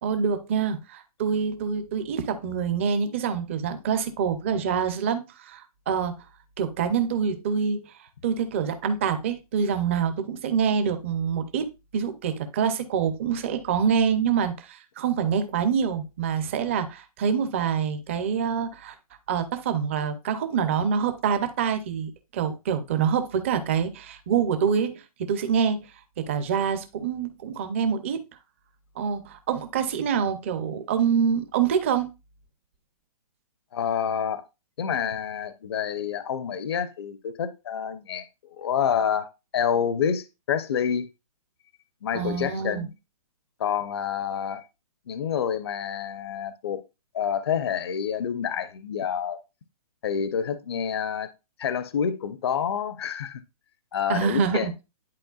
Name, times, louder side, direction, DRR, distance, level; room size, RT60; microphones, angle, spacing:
voice 1, 0.0-6.1 6.6-7.8 8.2-18.9 19.3-25.9 26.2-28.2 29.0-32.1 42.1-42.9 54.1-54.7, right 7 dB, 20° right, 0.5 m, -26 dB
voice 2, 33.7-34.4 34.8-38.3 38.6-41.1 42.0-42.9 43.6-44.6 45.1-46.8 47.1-49.4 50.0-51.3 51.6-53.4 53.9-54.7, left 8 dB, 40° left, 0.6 m, -28 dB
10.5 x 4.3 x 2.3 m
hypercardioid pair, 170°, 19 cm